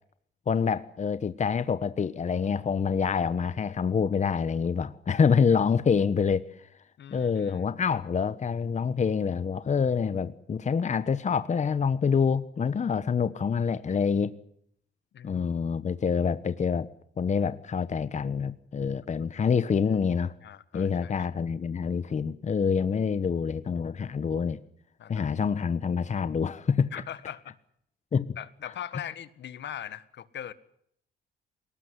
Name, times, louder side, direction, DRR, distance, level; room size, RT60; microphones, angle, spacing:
voice 1, 0.5-6.5 7.1-14.4 15.2-16.9 17.2-20.3 20.7-24.6 25.1-26.9 28.1-28.3, left 6 dB, 35° left, 1.1 m, -26 dB
voice 2, 7.0-7.7 15.1-15.4 19.2-19.3 20.4-21.1 25.0-25.3 26.9-27.5 28.4-30.5, left 10 dB, 65° left, 1.6 m, -40 dB
21.5 x 18.5 x 9.9 m
cardioid pair, 90°, 20 cm